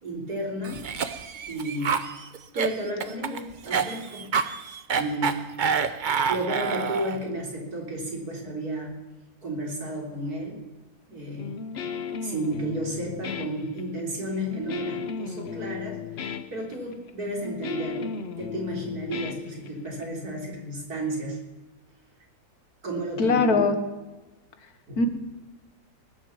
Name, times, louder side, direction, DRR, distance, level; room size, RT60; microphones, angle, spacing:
voice 1, 0.0-0.9 1.5-2.0 2.5-4.3 4.9-5.4 6.3-9.0 9.4-10.6 11.1-11.6 12.2-21.4 22.8-23.6 24.9-25.1, right 1 dB, 75° right, -1 dB, 4.0 m, -32 dB
Cough, 0.6-7.2, right 6 dB, 50° right, 0.6 m, -28 dB
Guitar, 11.4-20.0, left 6 dB, 50° left, 0.9 m, -35 dB
voice 2, 23.2-23.8 25.0-25.1, left 4 dB, 75° left, 8 dB, 1.8 m, -20 dB
19.5 x 7.4 x 7.0 m, 1.1 s
omnidirectional pair, 1.6 m